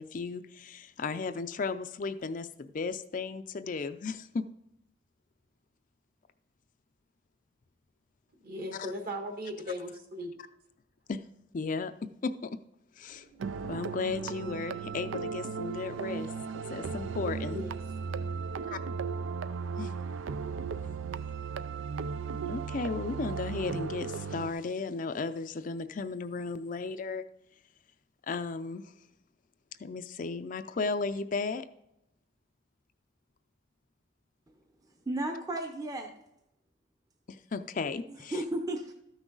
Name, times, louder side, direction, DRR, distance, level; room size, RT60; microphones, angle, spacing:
voice 1, 0.0-4.4 11.1-11.2 11.5-12.6 13.0-13.3 13.7-17.6 18.7-18.8 19.8-19.9 22.4-27.2 28.3-28.9 29.8-31.7 37.3-38.4, left 4 dB, 45° left, 10 dB, 0.4 m, -35 dB
voice 2, 8.4-10.3 17.4-17.7, equal, 50° right, 4 dB, 1.6 m, -38 dB
sound 1, 13.0-18.7, right 1 dB, 70° right, 2.5 m, -60 dB
sound 2, 13.4-24.5, right 5 dB, 85° right, 0.4 m, -36 dB
voice 3, 35.1-36.2 38.1-38.9, right 1 dB, 20° right, 3 dB, 0.7 m, -34 dB
13.0 x 6.1 x 3.9 m, 0.82 s
head